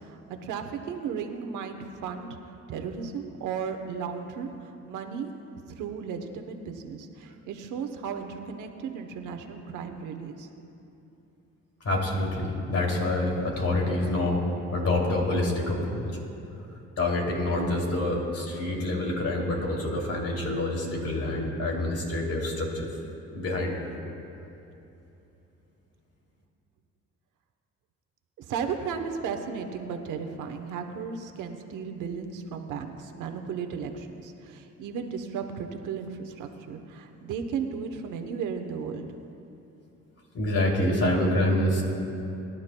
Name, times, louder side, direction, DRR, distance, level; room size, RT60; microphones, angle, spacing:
voice 1, 0.0-2.3 2.7-5.3 5.8-10.5 28.4-39.1, right 6 dB, 90° right, 6 dB, 1.0 m, -35 dB
voice 2, 11.8-14.4 14.7-16.1 17.0-22.9 23.3-23.8 40.3-41.8, left 1 dB, 55° left, -1 dB, 2.8 m, -27 dB
22.5 x 11.5 x 2.3 m, 2.9 s
cardioid pair, 90°, 30 cm